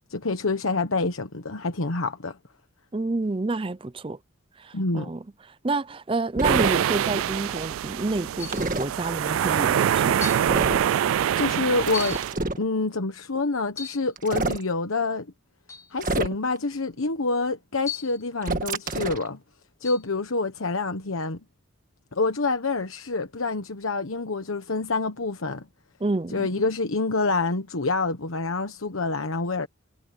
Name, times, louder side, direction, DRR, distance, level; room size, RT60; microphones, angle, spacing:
voice 1, 0.1-2.4 4.7-5.1 11.4-12.2 12.6-15.3 15.9-19.4 19.8-21.4 22.1-25.7 26.3-29.7, left 3 dB, 90° left, 1.2 m, -27 dB
voice 2, 2.9-4.2 4.6-5.2 5.6-10.2 26.0-26.5, right 2 dB, 25° right, 0.5 m, -29 dB
sound 1, 6.4-6.7 8.5-8.9 10.5-10.9 11.9-12.6 14.2-14.6 16.0-16.6 18.4-19.3, right 2 dB, 40° right, 1.6 m, -27 dB
sound 2, 6.4-12.3, right 10 dB, 85° right, 0.3 m, -25 dB
sound 3, 6.7-7.0 8.4-8.7 9.5-9.6 10.2-10.5 11.9-12.3 13.7-14.1 15.7-15.9 17.9-18.3 19.8-20.1, left 8 dB, 15° left, 1.4 m, -36 dB
head